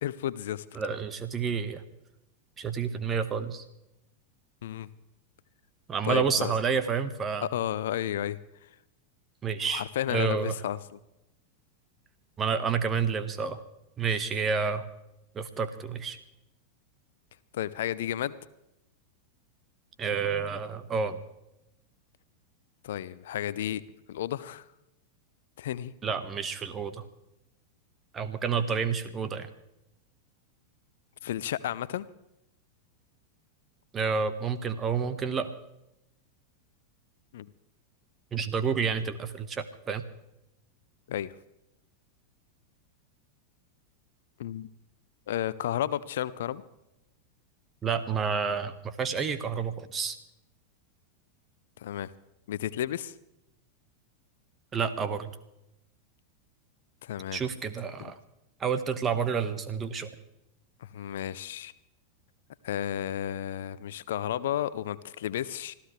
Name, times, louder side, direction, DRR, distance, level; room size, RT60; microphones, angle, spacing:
voice 1, 0.0-0.6 4.6-4.9 6.0-6.5 7.4-8.4 9.7-10.8 17.5-18.3 22.8-23.8 24.1-24.7 25.6-25.9 28.7-28.8 31.2-32.1 37.3-37.5 41.1-41.3 44.4-44.7 45.3-46.6 51.8-52.1 52.5-53.1 57.0-57.4 58.0-58.1 60.8-61.7 62.6-65.7, left 11 dB, 60° left, 18 dB, 0.6 m, -32 dB
voice 2, 0.7-1.8 2.6-3.6 5.9-7.5 9.4-9.8 10.1-10.5 12.4-13.6 14.0-14.9 15.3-16.2 20.0-21.2 26.0-27.0 28.1-29.5 33.9-35.5 38.3-40.0 47.8-50.2 54.7-55.3 57.3-58.2 58.6-60.1, right 6 dB, 25° right, 11 dB, 1.4 m, -29 dB
25.5 x 14.5 x 3.3 m, 0.89 s
figure-of-eight pair, 90°, 0 cm